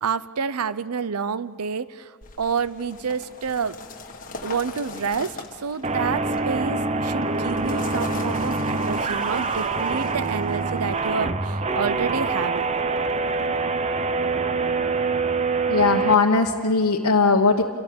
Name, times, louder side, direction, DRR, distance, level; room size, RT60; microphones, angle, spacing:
voice 1, 0.0-3.8 4.4-12.7, right 5 dB, 85° right, 16 dB, 0.6 m, -28 dB
sound 1, 2.2-11.1, left 3 dB, 40° left, 1.9 m, -40 dB
sound 2, 5.8-16.1, right 3 dB, 30° right, 0.7 m, -25 dB
voice 2, 15.7-17.6, left 4 dB, 85° left, 0 dB, 1.2 m, -19 dB
27.5 x 18.0 x 8.6 m, 2.1 s
head